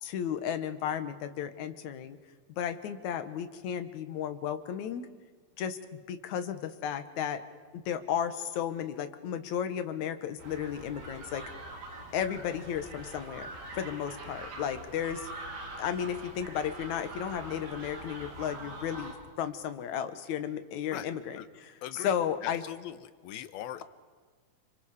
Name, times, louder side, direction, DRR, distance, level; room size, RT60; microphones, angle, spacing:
voice 1, 0.0-2.2 2.6-5.1 5.6-7.4 7.7-11.4 12.1-13.5 13.7-15.3 15.8-22.6, left 9 dB, 65° left, 9 dB, 2.1 m, -34 dB
sound 1, 10.4-19.1, right 2 dB, 75° right, 5.7 m, -44 dB
voice 2, 21.8-22.1 22.4-23.8, left 12 dB, 80° left, 12 dB, 2.8 m, -40 dB
29.0 x 26.0 x 4.9 m, 1.5 s
omnidirectional pair, 4.4 m